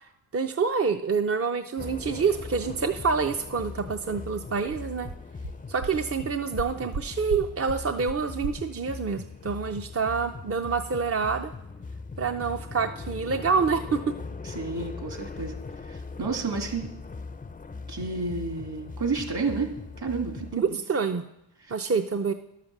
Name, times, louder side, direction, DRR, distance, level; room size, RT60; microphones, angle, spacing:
voice 1, 0.3-5.1 5.7-11.5 12.2-14.0 20.5-21.2 21.7-22.3, right 5 dB, 35° right, 6 dB, 0.5 m, -27 dB
sound 1, 1.8-20.6, left 4 dB, 20° left, 0.4 m, -40 dB
sound 2, 4.7-4.8 5.1-5.2 5.4-5.5 5.8-5.9 6.2-6.3 6.6-7.0 7.3-7.4 7.7-7.8 8.1-8.2 8.4-8.5, right 3 dB, 85° right, 0.9 m, -34 dB
voice 2, 14.4-16.9 17.9-20.8 21.6-21.7, right 4 dB, 60° right, 3 dB, 2.5 m, -31 dB
11.5 x 6.7 x 7.2 m, 0.88 s
wide cardioid pair, 110°, 45 cm